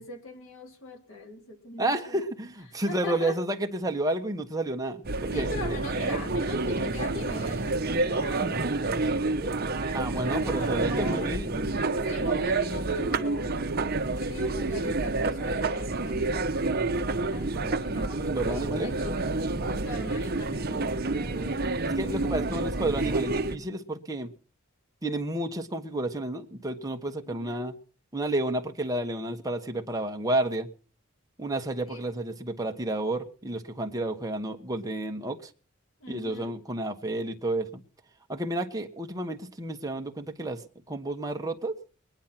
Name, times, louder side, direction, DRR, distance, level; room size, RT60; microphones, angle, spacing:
voice 1, 0.0-2.2 2.8-3.4 5.3-9.1 10.2-11.3 12.0-13.7 14.0-16.3 17.3-18.2 18.5-19.2 19.6-21.9 22.5-22.6 27.2-27.7 31.9-32.0 36.0-36.5, left 2 dB, 75° left, 3 dB, 3.4 m, -41 dB
voice 2, 1.8-5.5 9.9-11.6 18.3-18.9 21.8-24.3 25.0-27.7 28.1-30.7 31.4-35.5 36.1-37.8 38.3-40.6 40.9-41.8, right 1 dB, 20° right, 4 dB, 1.3 m, -31 dB
sound 1, 5.0-23.6, right 3 dB, 50° right, 1.0 m, -28 dB
20.5 x 10.5 x 5.9 m, 0.41 s
head